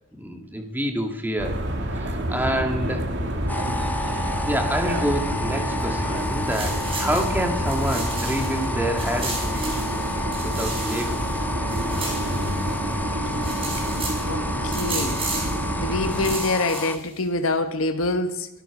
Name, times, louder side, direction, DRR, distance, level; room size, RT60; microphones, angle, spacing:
voice 1, 0.2-1.6 1.9-3.1 3.6-3.7 4.5-11.4, equal, 10° right, 2.1 m, -28 dB
sound 1, 1.4-16.4, right 1 dB, 60° right, 2.3 m, -28 dB
sound 2, 3.5-17.0, left 2 dB, 10° left, 0.7 m, -32 dB
sound 3, 6.2-8.7 9.0-12.9 13.2-14.3 14.7-15.6 16.0-17.2, right 3 dB, 25° right, 4.9 m, -34 dB
voice 2, 14.3-15.2 15.8-18.5, left 2 dB, 75° left, 1.3 m, -25 dB
23.5 x 12.5 x 4.9 m
head